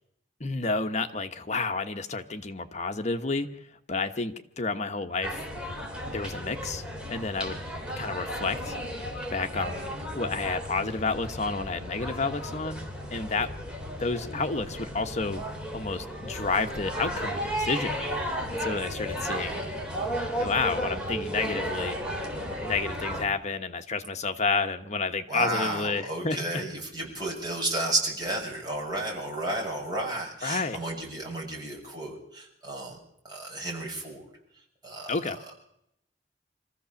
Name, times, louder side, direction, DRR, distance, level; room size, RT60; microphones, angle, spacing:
voice 1, 0.4-3.5 3.9-5.4 6.1-7.6 8.0-12.8 13.1-13.5 14.0-15.4 15.7-19.6 20.4-22.0 22.6-26.6 30.4-30.8 35.1-35.4, left 4 dB, 40° left, 7 dB, 1.2 m, -30 dB
sound 1, 5.2-23.2, equal, 5° right, 3.9 m, -34 dB
voice 2, 25.3-33.0 33.2-34.3 34.8-35.4, right 1 dB, 25° right, -1 dB, 7.0 m, -32 dB
25.0 x 14.5 x 7.2 m, 0.77 s
head